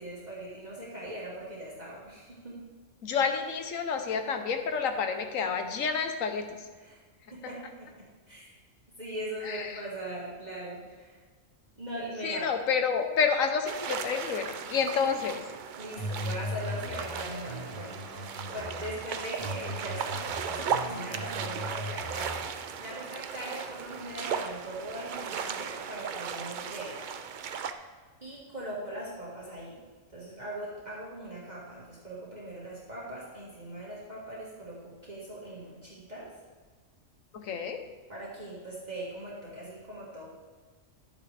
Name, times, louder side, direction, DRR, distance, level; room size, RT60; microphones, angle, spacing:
voice 1, 0.0-2.6 6.8-7.0 7.3-7.9 8.3-8.6 9.0-11.2 11.8-12.5 15.8-18.0 18.2-22.4 22.8-27.0 28.2-29.8 30.1-36.3 38.1-40.3, right 1 dB, 35° right, -7 dB, 1.9 m, -40 dB
voice 2, 3.0-6.7 9.4-9.8 12.2-15.4 37.3-37.8, left 6 dB, 85° left, 6 dB, 1.3 m, -29 dB
sound 1, 13.7-27.7, right 7 dB, 60° right, 0.5 m, -36 dB
sound 2, 16.0-19.0 19.4-22.4, left 1 dB, 90° right, 2.7 m, -38 dB
11.0 x 8.7 x 3.3 m, 1.4 s
omnidirectional pair, 1.3 m